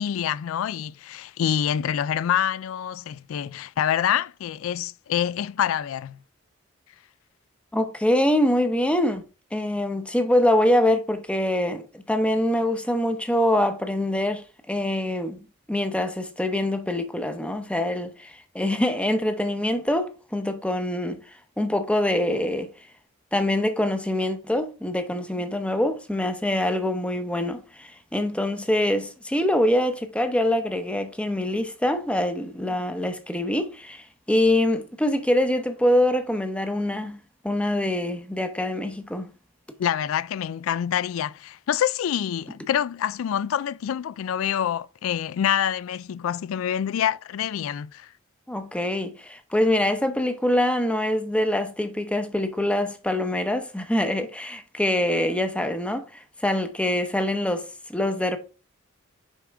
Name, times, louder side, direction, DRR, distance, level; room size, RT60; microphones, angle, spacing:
voice 1, 0.0-6.2 39.8-48.1, left 9 dB, 85° left, 0.3 m, -26 dB
voice 2, 7.7-9.2 9.5-15.4 15.7-21.2 21.6-22.7 23.3-37.2 37.4-39.3 48.5-56.0 56.4-58.4, left 1 dB, 5° left, 0.7 m, -24 dB
6.4 x 5.0 x 3.4 m
head